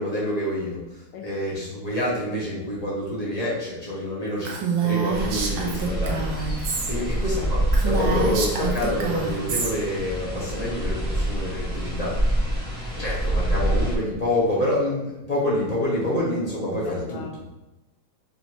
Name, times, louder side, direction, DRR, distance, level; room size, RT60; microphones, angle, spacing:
voice 1, 0.0-6.3 6.9-12.2 13.0-17.2, left 1 dB, 40° left, -7 dB, 0.5 m, -27 dB
Female speech woman speaking, 4.4-6.9 7.3-7.4 7.7-9.7, right 5 dB, 75° right, 1.3 m, -27 dB
sound 1, 5.1-14.0, right 1 dB, 5° left, 0.9 m, -26 dB
voice 2, 12.4-13.2 16.8-17.5, left 5 dB, 70° left, 2 dB, 1.2 m, -41 dB
5.1 x 2.7 x 3.0 m, 0.95 s
omnidirectional pair, 2.3 m